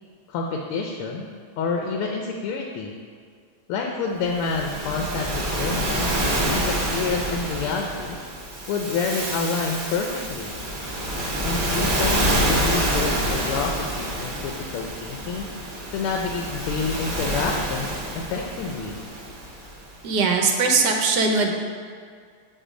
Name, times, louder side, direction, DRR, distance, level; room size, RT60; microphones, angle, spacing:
voice 1, 0.3-2.9 3.7-6.1 6.5-8.2 8.7-10.5 11.4-15.5 15.9-19.0, left 4 dB, 85° left, 1 dB, 1.6 m, -28 dB
Waves surf, 4.3-19.8, right 1 dB, 30° right, 1.2 m, -27 dB
voice 2, 20.0-21.5, right 4 dB, 65° right, 2 dB, 1.1 m, -20 dB
7.9 x 4.2 x 5.0 m, 2.1 s
omnidirectional pair, 2.4 m